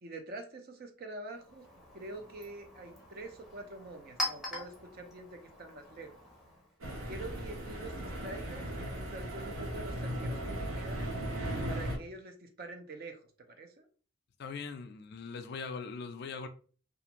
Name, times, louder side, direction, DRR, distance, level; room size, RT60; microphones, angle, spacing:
voice 1, 0.0-1.6 1.9-6.1 7.1-11.1 11.7-13.2 13.5-13.9, right 2 dB, 45° right, 0.5 m, -46 dB
Chink clink, 1.3-6.8, left 1 dB, ahead, 0.6 m, -43 dB
sound 1, 6.8-12.0, right 1 dB, 75° right, 0.8 m, -37 dB
voice 2, 14.4-16.5, left 5 dB, 50° left, 0.3 m, -41 dB
2.5 x 2.4 x 2.9 m
head